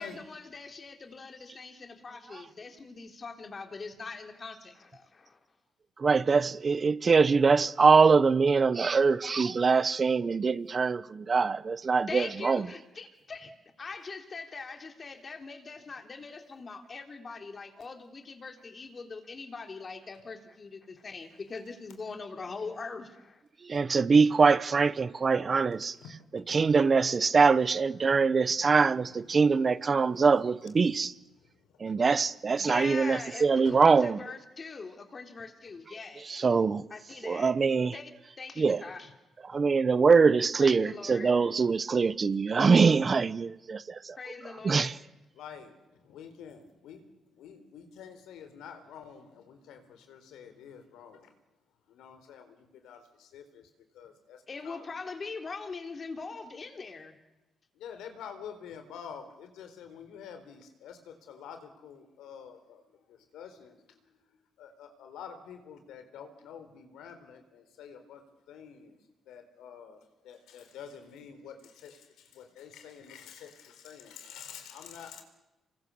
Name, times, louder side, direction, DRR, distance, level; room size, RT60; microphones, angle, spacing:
voice 1, 0.0-5.4 12.1-13.5 13.8-23.4 32.6-36.4 36.9-37.5 37.9-38.1 38.4-39.1 40.6-41.4 44.2-45.0 54.5-57.1, left 4 dB, 35° left, 3.5 m, -42 dB
voice 2, 6.0-12.7 23.7-25.9 26.5-31.1 31.8-34.2 36.2-36.8 37.2-38.0 38.6-38.8 39.5-44.2 44.6-44.9, right 5 dB, 35° right, 0.9 m, -23 dB
voice 3, 28.0-28.8 29.0-30.3 31.3-32.0 33.6-33.8 45.3-51.4 51.9-55.1 57.7-69.0 69.3-75.2, left 7 dB, 85° left, 4.0 m, -48 dB
27.5 x 23.0 x 7.1 m
cardioid pair, 90°, 0 cm